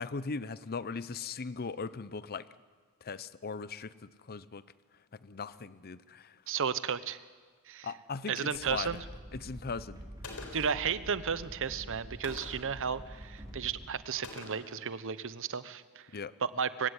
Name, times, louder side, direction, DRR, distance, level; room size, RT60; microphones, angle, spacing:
voice 1, 0.0-2.5 3.0-4.6 5.2-6.4 7.8-9.0 9.3-10.0 16.1-16.3, left 4 dB, 45° left, 16 dB, 0.7 m, -39 dB
voice 2, 6.5-7.2 7.7-7.9 8.3-9.0 10.5-16.1 16.4-16.9, right 6 dB, 60° right, 15 dB, 0.9 m, -33 dB
sound 1, 8.5-13.9, equal, 15° right, 3.5 m, -47 dB
Gunshot gunfire, 10.2-10.8 12.2-12.8 14.2-14.8, left 3 dB, 85° left, 4.1 m, -45 dB
24.0 x 16.0 x 9.8 m, 1.5 s
head